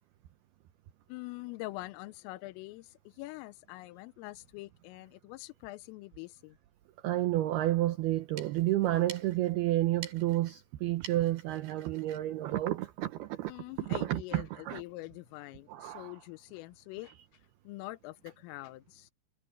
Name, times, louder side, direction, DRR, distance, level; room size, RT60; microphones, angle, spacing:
voice 1, 1.1-6.6 13.5-19.1, left 19 dB, 85° left, 3.3 m, -45 dB
voice 2, 7.0-13.5 13.8-14.8 15.7-16.1, right 15 dB, 85° right, 2.2 m, -30 dB
sound 1, 8.1-13.4, right 7 dB, 55° right, 5.1 m, -50 dB
omnidirectional pair, 5.8 m